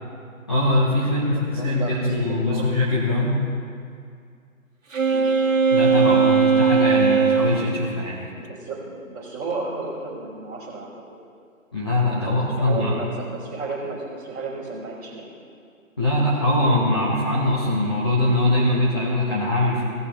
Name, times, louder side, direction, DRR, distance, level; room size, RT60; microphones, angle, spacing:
voice 1, 0.5-3.5 5.7-8.3 11.7-12.9 16.0-19.8, left 1 dB, 20° left, -7 dB, 0.9 m, -22 dB
voice 2, 1.3-2.8 5.1-5.3 8.5-11.0 12.2-15.3, right 3 dB, 10° right, -10 dB, 2.6 m, -33 dB
Wind instrument woodwind instrument, 4.9-7.8, right 6 dB, 65° right, 1.3 m, -19 dB
18.0 x 7.4 x 3.4 m, 2.3 s
figure-of-eight pair, 155°, 42 cm